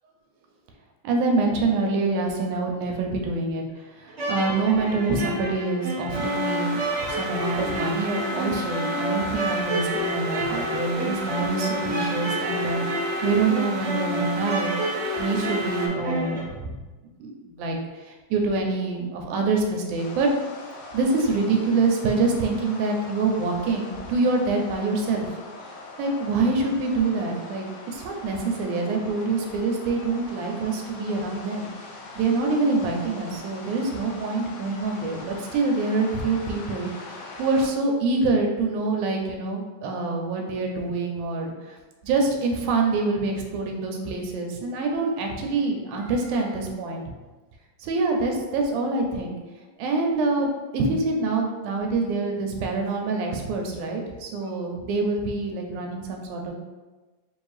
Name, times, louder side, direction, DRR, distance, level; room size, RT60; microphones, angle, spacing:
voice 1, 1.0-14.7 15.2-16.7 17.2-17.8 18.3-20.3 20.9-25.3 26.0-31.7 32.2-41.8 42.0-47.0 47.8-49.4 49.8-56.5, right 3 dB, 90° right, 2 dB, 2.0 m, -26 dB
sound 1, 4.1-16.4, equal, 35° right, 1.0 m, -29 dB
sound 2, 6.1-15.9, right 3 dB, 75° right, 1.5 m, -34 dB
sound 3, 20.0-37.7, left 3 dB, 75° left, 1.5 m, -42 dB
5.1 x 2.6 x 3.2 m, 1.3 s
omnidirectional pair, 3.5 m